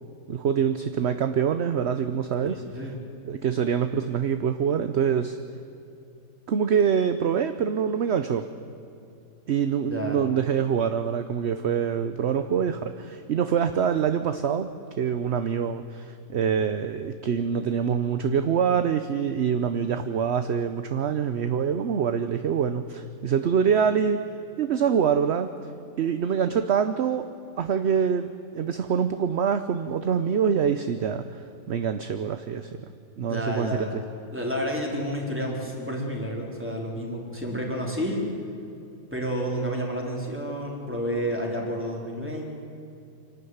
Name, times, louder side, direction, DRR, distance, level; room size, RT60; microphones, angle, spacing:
voice 1, 0.3-2.6 3.2-5.4 6.5-8.5 9.5-14.7 15.0-24.2 24.6-25.5 26.0-27.3 27.6-28.3 28.5-31.4 31.7-32.8 33.2-34.0, right 7 dB, 55° right, 9 dB, 0.9 m, -25 dB
voice 2, 2.5-2.9 9.9-10.2 33.2-34.0 34.3-38.3 39.1-42.4, equal, 10° right, -1 dB, 3.7 m, -30 dB
26.0 x 12.5 x 9.4 m, 2.7 s
omnidirectional pair, 1.6 m